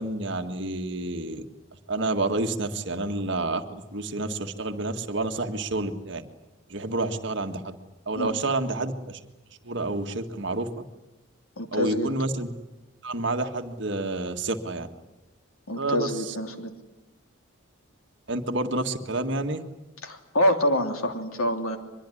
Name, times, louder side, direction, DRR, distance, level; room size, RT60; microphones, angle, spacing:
voice 1, 0.0-1.5 1.9-6.2 6.7-7.8 8.1-9.2 9.6-10.8 11.7-12.5 13.0-14.9 15.8-16.4 18.3-19.6, right 2 dB, 55° right, 6 dB, 1.8 m, -29 dB
voice 2, 11.6-12.1 15.7-16.7 20.0-21.8, left 1 dB, 85° left, 5 dB, 3.1 m, -26 dB
23.5 x 22.0 x 10.0 m, 1.0 s
head